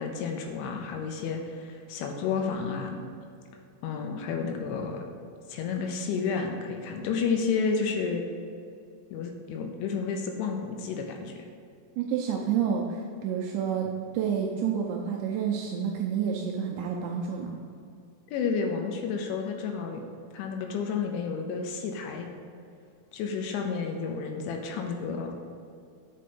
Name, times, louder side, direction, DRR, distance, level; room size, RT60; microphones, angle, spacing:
voice 1, 0.0-3.0 3.8-5.1 5.5-8.2 9.1-11.5 18.3-20.0 20.3-22.3 23.1-25.3, left 5 dB, 80° left, 3 dB, 2.9 m, -31 dB
voice 2, 12.0-17.6, right 7 dB, 85° right, -1 dB, 2.6 m, -29 dB
7.7 x 5.4 x 5.2 m, 2.4 s
omnidirectional pair, 5.7 m